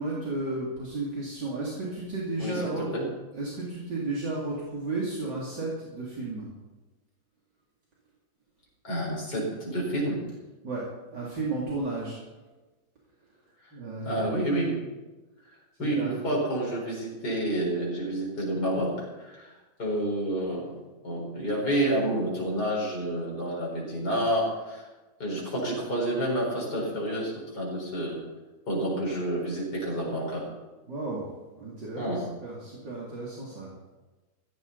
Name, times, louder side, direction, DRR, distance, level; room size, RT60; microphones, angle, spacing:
voice 1, 0.0-2.9 3.3-6.5 10.6-12.2 13.7-14.2 16.0-16.1 30.9-31.3 31.5-33.9, right 2 dB, 60° right, -6 dB, 3.5 m, -33 dB
voice 2, 2.4-3.1 8.8-10.2 14.0-14.8 15.8-19.5 19.8-20.7 21.0-24.9 25.2-28.2 28.7-30.5 32.0-32.3, right 1 dB, 50° left, -3 dB, 5.3 m, -29 dB
15.5 x 15.5 x 4.1 m, 1.2 s
omnidirectional pair, 2.2 m